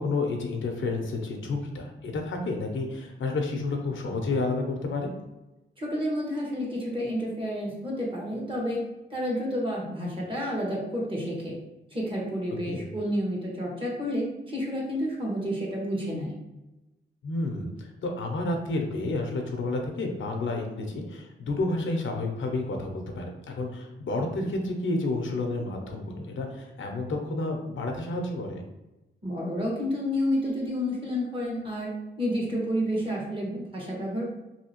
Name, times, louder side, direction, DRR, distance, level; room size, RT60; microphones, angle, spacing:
voice 1, 0.0-5.1 12.7-12.8 17.2-28.6, left 2 dB, 75° left, 3 dB, 0.6 m, -30 dB
voice 2, 5.8-8.8 9.1-11.6 11.9-16.3 29.2-31.9 32.2-34.3, equal, 25° right, -3 dB, 1.1 m, -30 dB
3.0 x 2.8 x 2.9 m, 1.0 s
cardioid pair, 90°, 20 cm